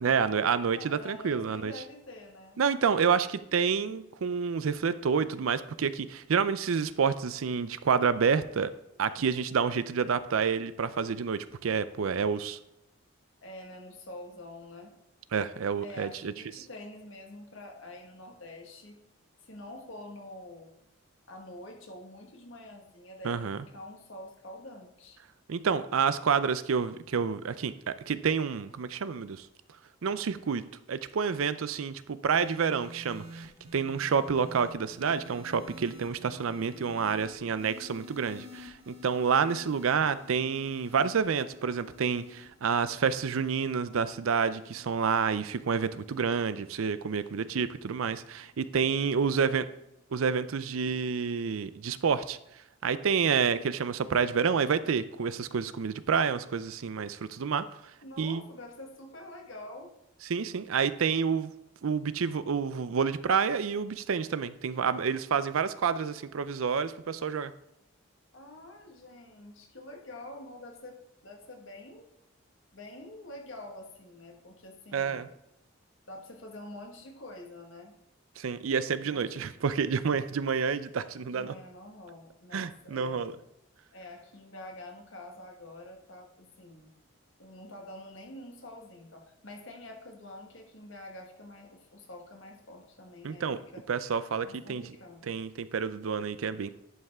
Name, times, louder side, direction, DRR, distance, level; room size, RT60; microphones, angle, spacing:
voice 1, 0.0-1.7 2.6-8.7 9.0-12.6 15.3-16.6 23.2-23.6 25.5-29.5 30.0-49.6 50.1-52.4 52.8-57.6 58.2-58.4 60.3-61.5 61.8-67.5 74.9-75.3 78.4-81.5 82.5-83.3 93.2-93.6 93.9-94.8 95.2-96.7, right 6 dB, 80° right, 14 dB, 0.5 m, -29 dB
voice 2, 0.7-2.6 13.4-14.9 15.8-19.0 19.4-20.7 21.3-25.2 49.1-49.7 58.0-59.9 68.3-72.1 72.7-75.3 76.1-77.9 79.0-79.5 81.3-83.2 83.9-86.9 87.4-93.9 94.4-95.3, left 1 dB, 70° left, 2 dB, 1.7 m, -46 dB
sound 1, 32.3-48.8 49.7-50.0, left 1 dB, 25° right, 1.7 m, -51 dB
11.0 x 5.5 x 3.6 m, 0.84 s
head